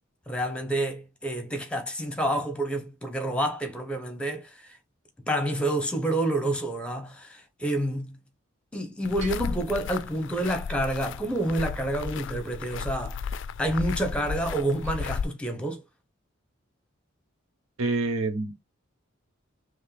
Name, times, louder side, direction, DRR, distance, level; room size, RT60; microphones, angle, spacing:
voice 1, 0.3-4.8 5.3-8.2 8.7-13.3 13.6-15.8, right 1 dB, 5° left, 0.9 m, -28 dB
sound 1, 9.0-15.3, left 6 dB, 60° left, 0.3 m, -34 dB
Bell, 9.2-10.9, right 7 dB, 70° right, 2.4 m, -49 dB
voice 2, 17.8-18.6, right 2 dB, 85° right, 1.0 m, -27 dB
4.6 x 3.1 x 3.3 m
head